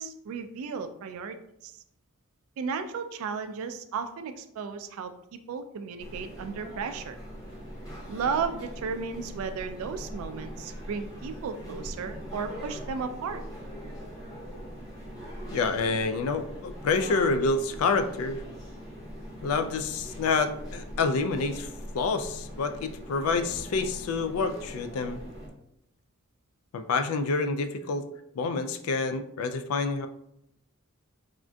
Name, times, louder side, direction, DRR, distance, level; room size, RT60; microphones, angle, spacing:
voice 1, 0.0-1.8 2.6-7.2 8.1-13.4, right 5 dB, 80° right, 12 dB, 0.3 m, -34 dB
sound 1, 6.0-25.5, equal, 15° left, 0.7 m, -41 dB
voice 2, 15.5-18.4 19.4-21.7 21.9-25.2 26.7-28.0 28.3-30.1, left 4 dB, 85° left, 10 dB, 0.3 m, -28 dB
3.6 x 2.5 x 2.2 m, 0.78 s
head